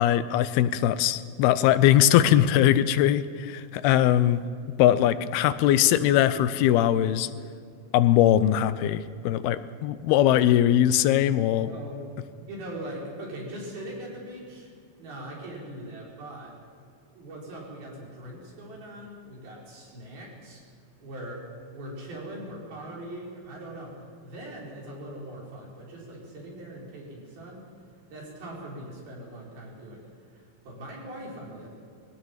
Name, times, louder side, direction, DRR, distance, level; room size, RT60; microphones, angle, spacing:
voice 1, 0.0-4.4 4.8-7.3 7.9-11.7, left 11 dB, 85° left, 14 dB, 2.7 m, -21 dB
voice 2, 11.6-12.0 12.3-16.5 17.1-20.6 21.0-21.4 21.7-27.7 28.1-30.0 30.3-31.7, right 1 dB, 75° right, -3 dB, 6.7 m, -41 dB
22.0 x 17.0 x 7.3 m, 2.4 s
omnidirectional pair, 4.4 m